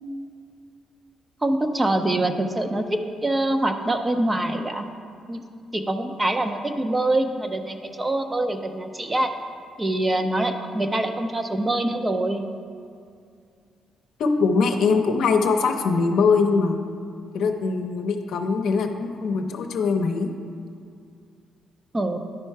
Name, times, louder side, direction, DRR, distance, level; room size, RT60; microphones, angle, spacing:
voice 1, 1.4-4.9 5.3-5.4 5.7-9.3 9.8-12.4 21.9-22.2, right 1 dB, 20° right, 6 dB, 0.6 m, -24 dB
voice 2, 14.2-16.8 17.3-20.3, left 4 dB, 75° left, 4 dB, 0.7 m, -22 dB
11.0 x 4.5 x 4.6 m, 2.4 s
cardioid pair, 90°, 0 cm